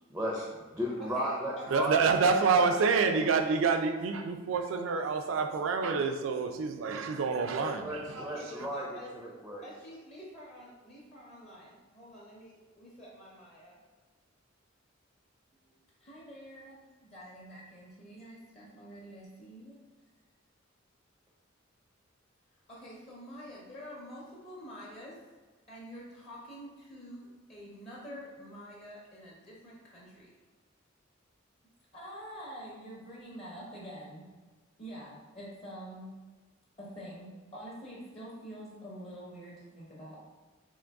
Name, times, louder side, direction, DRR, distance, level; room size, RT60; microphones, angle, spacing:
voice 1, 0.1-2.0 6.7-7.0 7.5-9.6, equal, 5° right, -3 dB, 0.4 m, -35 dB
voice 2, 1.0-1.9 2.3-2.8 8.2-9.1 9.6-13.8 15.6-15.7 16.0-19.8 22.7-25.2 25.7-30.3 31.9-34.3 34.8-36.2 36.8-40.2, equal, 35° left, -6 dB, 0.7 m, -47 dB
voice 3, 1.7-8.3, right 5 dB, 75° right, 6 dB, 0.4 m, -27 dB
3.8 x 2.6 x 3.4 m, 1.3 s
head